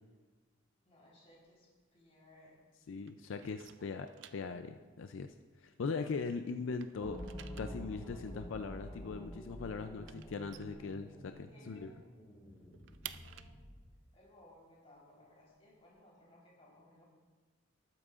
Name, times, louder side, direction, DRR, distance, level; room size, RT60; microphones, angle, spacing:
voice 1, 0.8-2.6 6.3-6.4 11.5-12.1 13.0-13.6 14.1-17.0, left 1 dB, 30° left, -5 dB, 3.7 m, -62 dB
sound 1, 1.3-2.7 3.0-6.2 6.5-11.5 11.9-12.0 12.3-16.0, right 11 dB, 65° right, 0.4 m, -54 dB
voice 2, 2.9-5.3 5.6-7.2 7.6-11.9, left 4 dB, 80° left, 8 dB, 0.4 m, -40 dB
sound 2, 7.0-13.9, equal, 15° left, 1.6 m, -48 dB
19.0 x 8.6 x 2.5 m, 1.4 s
head